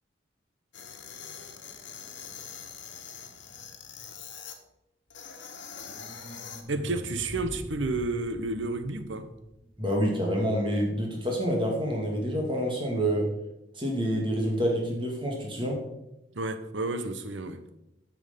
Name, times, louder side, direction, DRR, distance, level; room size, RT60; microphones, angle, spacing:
sound 1, 0.7-4.6 5.1-6.6, left 7 dB, 75° left, 1.4 m, -43 dB
sound 2, 5.6-10.7, equal, 30° left, 2.2 m, -44 dB
voice 1, 6.7-9.3 16.3-17.6, right 2 dB, 80° right, 0.9 m, -31 dB
voice 2, 9.8-13.3 13.8-15.8, equal, 25° right, 2.1 m, -27 dB
9.8 x 6.3 x 5.2 m
head